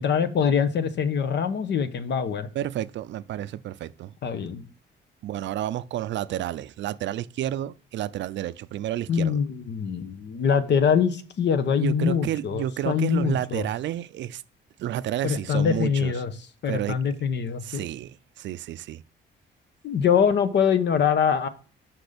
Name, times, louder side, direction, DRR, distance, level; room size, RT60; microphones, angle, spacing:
voice 1, 0.0-2.5 4.2-4.6 9.1-13.6 15.2-16.3 16.6-17.8 19.8-21.5, left 7 dB, 60° left, 1.0 m, -24 dB
voice 2, 2.5-4.2 5.2-9.4 11.8-14.4 14.8-16.1 16.7-17.0 17.6-19.0, right 12 dB, 65° right, 0.4 m, -30 dB
6.1 x 5.7 x 5.1 m
cardioid pair, 90°, 20 cm